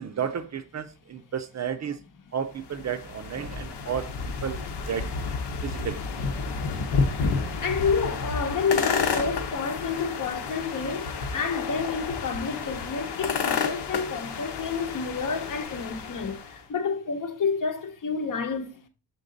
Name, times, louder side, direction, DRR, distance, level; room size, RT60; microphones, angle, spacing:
voice 1, 0.0-2.0 2.3-5.1 5.6-6.0, right 8 dB, 45° right, 0.5 m, -32 dB
sound 1, 2.5-16.6, left 5 dB, 85° left, 1.0 m, -31 dB
voice 2, 7.6-18.8, left 5 dB, 50° left, 0.9 m, -29 dB
6.9 x 4.0 x 3.8 m
wide cardioid pair, 145°, 40 cm